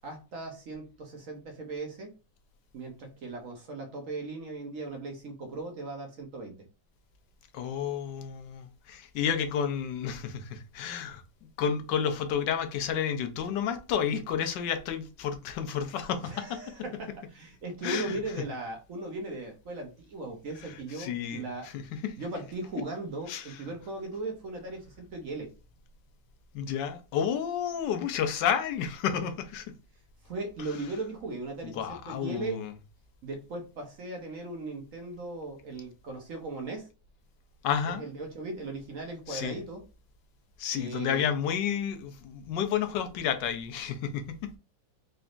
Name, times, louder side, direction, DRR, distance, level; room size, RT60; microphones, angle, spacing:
voice 1, 0.0-2.1 2.7-6.5 16.2-21.7 22.2-25.5 30.2-32.6 33.2-36.9 37.8-39.8 40.7-41.3, right 2 dB, 55° right, 1.1 m, -38 dB
voice 2, 7.5-11.2 11.6-16.6 17.8-18.2 20.7-22.2 23.3-23.6 26.5-29.7 31.6-32.7 37.6-38.0 39.3-39.6 40.6-44.4, left 8 dB, 80° left, 1.3 m, -31 dB
4.0 x 3.4 x 2.4 m
omnidirectional pair, 1.9 m